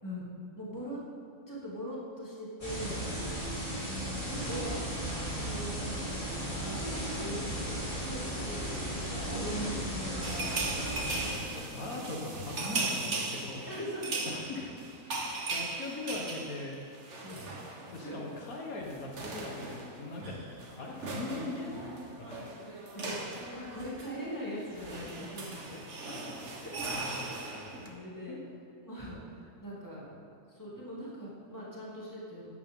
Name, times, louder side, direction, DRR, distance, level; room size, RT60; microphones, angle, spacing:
voice 1, 0.6-1.0 1.5-3.0 3.8-11.1 13.7-14.5 17.2-17.4 18.0-18.2 22.9-25.8 26.6-26.7 27.4-28.4 28.8-30.1 30.5-32.5, equal, 15° left, -7 dB, 2.8 m, -41 dB
sound 1, 2.6-11.3, right 1 dB, 35° left, 3.4 m, -35 dB
sound 2, 6.6-8.0 8.5-11.7, right 2 dB, 90° right, 2.2 m, -49 dB
sound 3, 10.2-18.1 18.4-18.6 18.8-27.9, right 3 dB, 55° right, 1.6 m, -38 dB
voice 2, 11.1-13.6 14.3-14.7 15.1-16.8 17.8-20.4 20.8-21.7 22.2-22.4 25.4-25.6 26.0-26.1 28.3-28.4, left 3 dB, 85° left, -1 dB, 1.9 m, -40 dB
14.0 x 10.0 x 3.8 m, 2.6 s
omnidirectional pair, 1.5 m